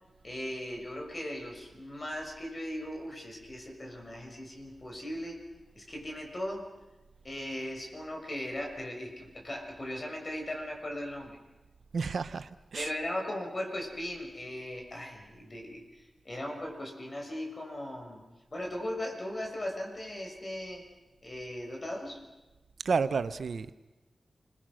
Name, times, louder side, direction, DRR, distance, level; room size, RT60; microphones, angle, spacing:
voice 1, 0.2-5.4 5.7-6.6 7.2-11.4 12.8-15.8 16.2-18.2 18.5-20.8 21.2-22.2, left 1 dB, 40° left, 6.6 m, -38 dB
voice 2, 11.9-12.9 22.8-23.7, right 5 dB, 75° right, 0.9 m, -31 dB
29.0 x 22.5 x 6.4 m
cardioid pair, 55°, 0 cm